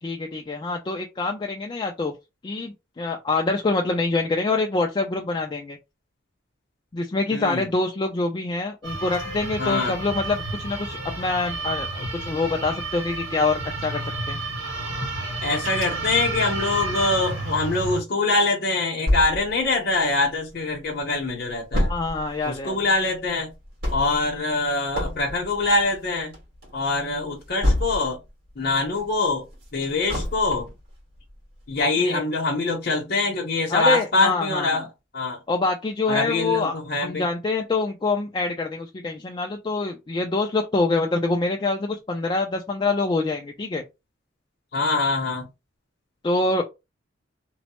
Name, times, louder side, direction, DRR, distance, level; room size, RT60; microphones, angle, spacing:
voice 1, 0.0-2.1 2.4-5.8 6.9-14.4 21.9-22.8 32.0-32.2 33.7-34.8 35.5-43.8 46.2-46.6, left 3 dB, 25° left, 0.3 m, -25 dB
voice 2, 7.3-7.7 9.6-10.0 15.4-21.9 22.4-23.5 23.9-26.3 26.7-28.2 28.6-29.4 29.7-30.7 31.7-34.9 35.1-35.4 36.1-37.3 44.7-45.5, left 3 dB, 55° left, 0.8 m, -24 dB
sound 1, 8.8-18.0, right 2 dB, 90° right, 1.7 m, -31 dB
sound 2, 19.1-20.6 21.0-21.1 21.3-28.3 28.7-30.8 31.3-31.4 31.8-31.9, left 1 dB, 55° right, 1.7 m, -28 dB
3.0 x 2.0 x 2.9 m
head